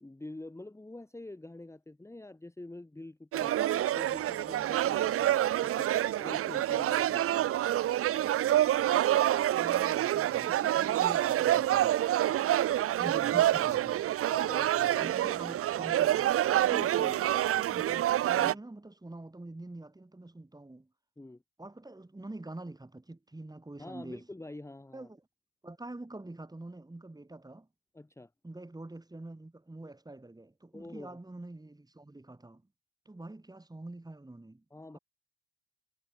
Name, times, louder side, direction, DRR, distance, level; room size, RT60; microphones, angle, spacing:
voice 1, 0.0-3.6 3.9-7.5 10.7-11.2 12.3-12.5 14.3-15.6 16.0-16.2 16.8-17.1 18.3-18.6 21.2-21.4 23.8-25.1 27.9-28.3 30.7-31.2 34.7-35.0, left 2 dB, 10° left, 1.9 m, -46 dB
sound 1, 3.3-18.5, right 13 dB, 45° right, 0.7 m, -27 dB
voice 2, 9.5-12.0 13.0-14.0 14.9-20.9 21.6-24.3 24.9-25.2 25.6-27.7 28.4-32.6 33.1-34.6 34.9-35.0, right 2 dB, 10° right, 4.3 m, -46 dB
hypercardioid pair, 60°, 32 cm